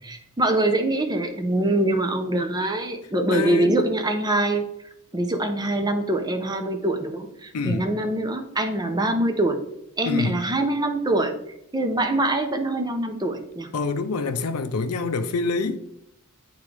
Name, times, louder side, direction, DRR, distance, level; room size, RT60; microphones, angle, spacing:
voice 1, 0.1-4.7 5.1-9.6 10.0-11.3 11.7-13.7, right 1 dB, 20° right, 0.6 m, -24 dB
voice 2, 3.3-3.8 7.5-7.9 10.1-10.4 13.7-15.8, left 3 dB, 75° left, 0.5 m, -26 dB
8.7 x 3.7 x 3.3 m
head